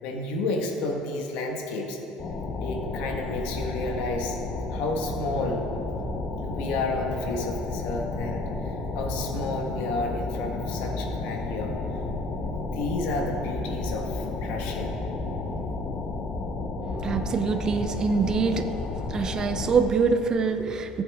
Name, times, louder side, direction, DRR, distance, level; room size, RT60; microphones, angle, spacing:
voice 1, 0.0-2.0 2.6-4.4 4.7-5.6 6.4-11.7 12.4-14.9, left 2 dB, 75° left, 2 dB, 1.5 m, -31 dB
sound 1, 2.2-19.9, left 3 dB, 35° left, 0.9 m, -32 dB
voice 2, 16.8-18.8 19.1-21.0, right 5 dB, 25° right, 7 dB, 0.6 m, -25 dB
16.0 x 8.0 x 3.6 m, 3.0 s
cardioid pair, 150°, 3 cm